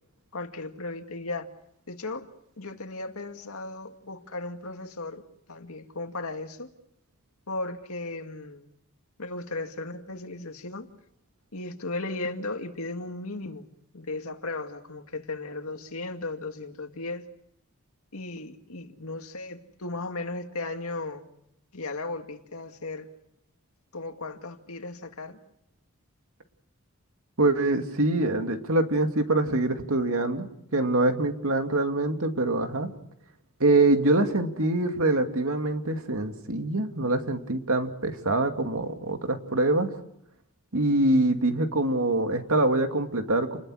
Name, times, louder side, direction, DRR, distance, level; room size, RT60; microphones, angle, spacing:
voice 1, 0.3-1.5 1.9-2.3 2.6-5.2 5.5-6.7 7.5-8.7 9.2-10.9 11.5-17.3 18.1-21.2 21.7-23.1 23.9-25.4, left 2 dB, 90° left, 2.2 m, -36 dB
voice 2, 27.4-32.9 33.6-39.9 40.7-43.6, right 2 dB, 80° right, 2.3 m, -24 dB
29.0 x 21.0 x 6.4 m
head